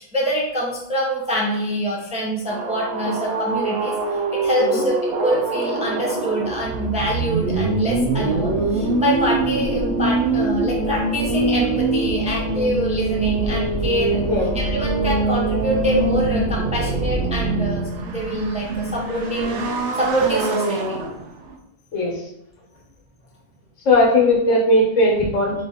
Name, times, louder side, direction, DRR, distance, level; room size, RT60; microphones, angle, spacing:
voice 1, 0.0-19.6 20.0-21.0, right 1 dB, 5° right, -3 dB, 0.6 m, -25 dB
sound 1, 2.5-21.6, right 2 dB, 70° right, 0.9 m, -23 dB
voice 2, 23.8-25.5, left 1 dB, 80° left, -2 dB, 1.5 m, -17 dB
3.9 x 3.1 x 3.5 m, 0.81 s
omnidirectional pair, 1.3 m